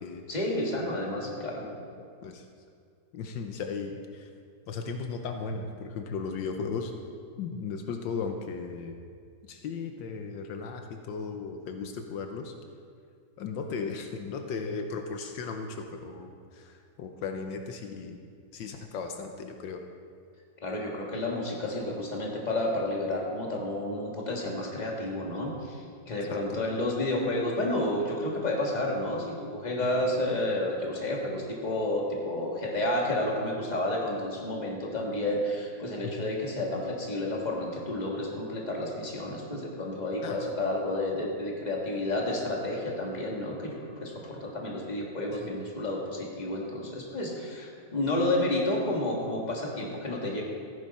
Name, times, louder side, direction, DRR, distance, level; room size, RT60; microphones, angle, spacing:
voice 1, 0.3-1.6 20.6-50.4, left 1 dB, 25° left, -2 dB, 1.8 m, -31 dB
voice 2, 1.4-1.9 2.2-2.5 3.1-4.3 4.7-6.9 7.4-8.9 9.5-12.5 13.4-18.2 18.5-19.8 26.2-26.3 26.6-26.8 29.9-30.0 36.0-36.1 40.2-40.4 45.4-45.5, left 5 dB, 80° left, 5 dB, 1.5 m, -36 dB
14.0 x 10.5 x 4.2 m, 2.3 s
omnidirectional pair, 2.0 m